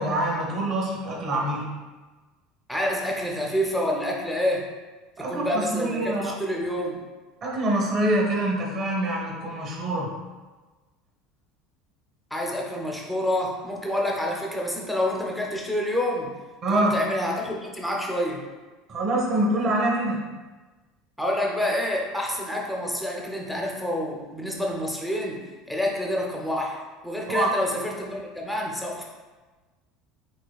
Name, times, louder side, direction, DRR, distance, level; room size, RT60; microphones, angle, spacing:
voice 1, 0.0-1.6 5.2-6.3 7.4-10.1 16.6-17.0 18.9-20.2 27.3-27.5, right 1 dB, 30° right, -1 dB, 0.8 m, -25 dB
voice 2, 2.7-4.7 5.2-7.0 12.3-16.3 16.7-18.4 21.2-29.0, left 1 dB, ahead, -1 dB, 0.5 m, -28 dB
5.4 x 3.7 x 2.3 m, 1.3 s
cardioid pair, 175°, 0 cm